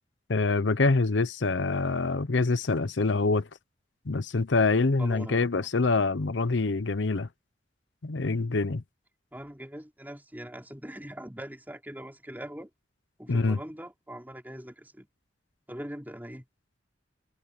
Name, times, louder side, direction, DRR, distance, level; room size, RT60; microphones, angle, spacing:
voice 1, 0.3-3.5 4.1-7.3 8.0-8.8 13.3-13.6, left 3 dB, 75° left, 0.8 m, -25 dB
voice 2, 5.0-5.5 9.3-12.7 13.2-15.1 15.7-16.5, equal, 10° right, 3.5 m, -41 dB
head